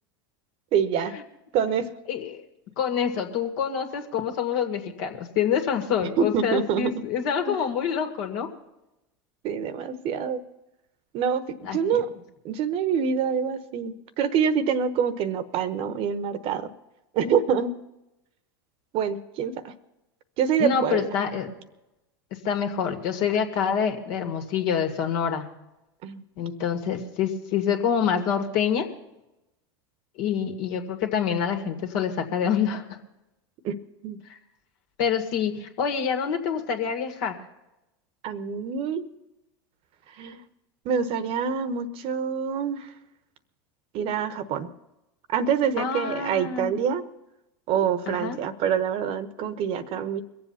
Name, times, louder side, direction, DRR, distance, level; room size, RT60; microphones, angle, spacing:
voice 1, 0.7-1.1 1.5-1.9 6.2-7.0 7.5-7.6 9.4-10.4 11.1-12.1 12.4-16.7 17.1-17.7 18.9-19.7 20.4-21.1 26.0-26.2 33.6-33.8 34.0-34.2 38.2-39.0 40.2-40.4 40.8-42.9 43.9-44.7 45.3-47.1 47.7-50.2, right 7 dB, 50° right, 13 dB, 1.1 m, -26 dB
voice 2, 2.1-2.4 2.8-8.5 11.6-12.0 20.6-21.5 22.4-25.5 26.4-28.9 30.2-33.0 35.0-37.4 45.8-46.8 48.1-48.4, left 7 dB, 60° left, 4 dB, 2.1 m, -26 dB
22.5 x 7.8 x 5.7 m, 0.94 s
hypercardioid pair, 100°, 13 cm